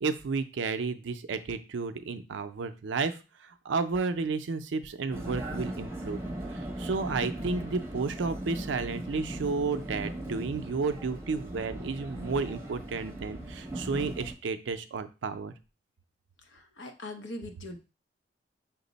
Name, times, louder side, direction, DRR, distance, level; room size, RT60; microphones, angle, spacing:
voice 1, 0.0-3.1 3.4-6.2 6.5-15.5, right 4 dB, 90° right, 9 dB, 0.4 m, -32 dB
Vehicle, 5.1-14.3, right 1 dB, 15° right, 0.7 m, -38 dB
voice 2, 16.5-17.8, left 1 dB, 90° left, 5 dB, 0.8 m, -41 dB
5.8 x 2.0 x 3.9 m, 0.31 s
head